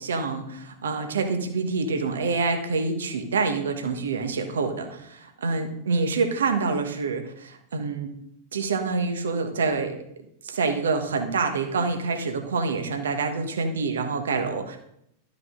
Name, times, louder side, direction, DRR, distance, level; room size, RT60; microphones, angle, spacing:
voice 1, 0.0-8.1 8.5-9.9 10.4-14.8, right 4 dB, 65° right, 6 dB, 1.3 m, -26 dB
12.5 x 5.7 x 3.8 m, 0.76 s
figure-of-eight pair, 90°, 0 cm